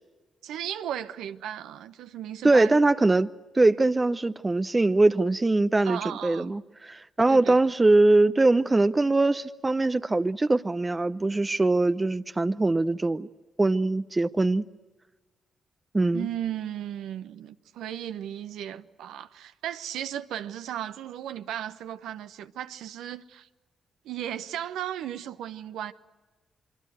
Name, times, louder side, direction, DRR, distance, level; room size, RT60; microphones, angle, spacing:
voice 1, 0.4-2.8 5.8-6.5 7.3-7.6 16.1-23.5 24.0-25.9, right 11 dB, 75° right, 0.9 m, -35 dB
voice 2, 2.4-3.3 3.5-13.3 13.6-14.6 15.9-16.3, right 2 dB, 25° right, 0.7 m, -22 dB
25.5 x 24.0 x 7.9 m
hypercardioid pair, 40°, 0 cm